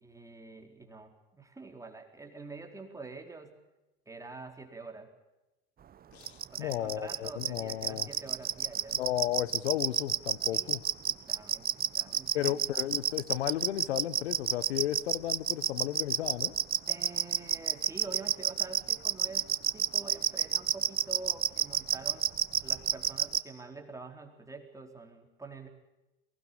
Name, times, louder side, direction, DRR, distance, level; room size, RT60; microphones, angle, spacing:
voice 1, 0.0-3.6 4.1-5.1 6.5-9.0 10.5-10.8 11.1-12.6 16.9-22.3 22.6-25.7, right 3 dB, 10° right, 3 dB, 4.1 m, -46 dB
voice 2, 6.1-8.1 8.9-10.8 12.3-16.5, left 13 dB, 80° left, 17 dB, 1.3 m, -33 dB
sound 1, 6.3-23.4, right 9 dB, 30° right, 1.1 m, -28 dB
23.0 x 19.5 x 8.6 m, 1.0 s
hypercardioid pair, 90°, 32 cm